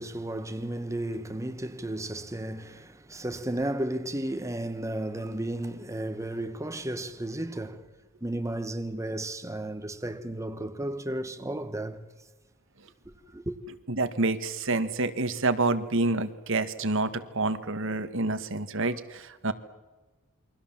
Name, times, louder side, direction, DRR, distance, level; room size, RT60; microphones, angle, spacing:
voice 1, 0.0-7.9 8.2-12.0 13.3-13.6, right 1 dB, 15° right, 1.4 m, -33 dB
voice 2, 13.9-19.5, right 2 dB, 65° right, 1.7 m, -28 dB
28.5 x 23.0 x 7.5 m
head